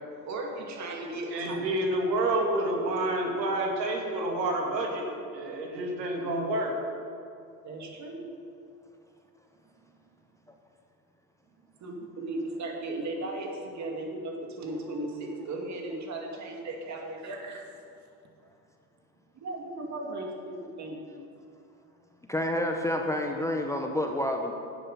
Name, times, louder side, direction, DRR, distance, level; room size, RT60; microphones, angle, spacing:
voice 1, 0.2-1.6 7.6-8.3 11.8-17.8 19.3-21.0, right 2 dB, 35° right, 1 dB, 2.3 m, -36 dB
voice 2, 1.3-5.1 5.3-6.7, right 1 dB, 90° right, 1 dB, 2.2 m, -28 dB
voice 3, 22.3-24.5, left 1 dB, 5° left, 3 dB, 0.7 m, -29 dB
10.5 x 8.6 x 5.6 m, 2.6 s
hypercardioid pair, 95°, 49 cm